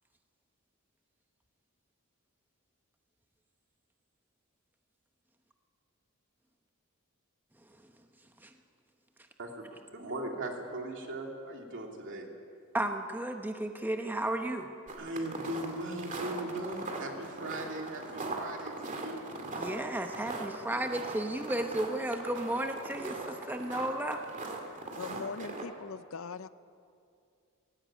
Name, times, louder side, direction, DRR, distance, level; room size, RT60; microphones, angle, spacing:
voice 1, 7.6-8.0 8.4-8.5 12.7-14.7 19.5-24.2, right 1 dB, 10° right, 5 dB, 0.8 m, -34 dB
voice 2, 9.9-12.3 15.0-19.2, right 1 dB, 60° right, 1 dB, 2.8 m, -39 dB
sound 1, 14.9-25.6, right 2 dB, 35° right, 2.4 m, -40 dB
voice 3, 25.0-26.5, left 5 dB, 70° left, 14 dB, 0.6 m, -41 dB
18.0 x 16.5 x 8.9 m, 2.4 s
head